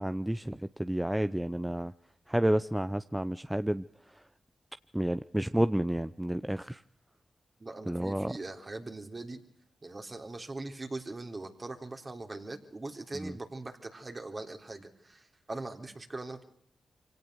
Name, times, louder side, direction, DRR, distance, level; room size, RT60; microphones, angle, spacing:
voice 1, 0.0-1.9 2.3-4.3 4.9-6.8 7.9-8.4 13.1-13.4, right 1 dB, 10° right, 12 dB, 0.8 m, -30 dB
voice 2, 7.6-9.4 9.8-16.4, right 2 dB, 40° right, 5 dB, 3.6 m, -41 dB
25.0 x 17.5 x 6.3 m, 0.65 s
supercardioid pair, 40°, 0 cm